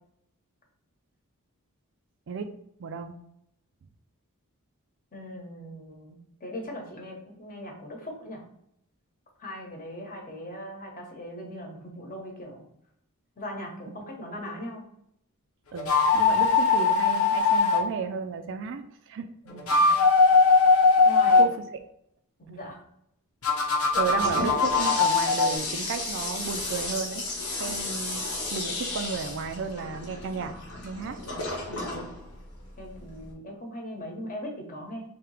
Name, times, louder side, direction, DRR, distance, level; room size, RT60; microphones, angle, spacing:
voice 1, 2.8-3.1 13.9-14.0 15.7-19.3 19.8-20.0 21.4-21.5 24.0-27.2 27.6-28.2 28.5-30.5 30.8-31.2, right 5 dB, 55° right, 7 dB, 0.4 m, -33 dB
voice 2, 5.1-8.4 9.4-12.6 13.4-14.8 19.4-19.9 21.0-21.4 22.4-22.8 23.9-24.1 31.2-31.4 31.7-32.1 32.8-35.0, equal, 40° left, 0 dB, 1.1 m, -39 dB
sound 1, 15.8-17.8 19.5-21.5 23.4-25.6, left 4 dB, 70° left, 0.9 m, -20 dB
Toilet flush, 23.9-33.3, left 2 dB, 85° left, 1.2 m, -34 dB
3.4 x 2.8 x 4.7 m, 0.75 s
head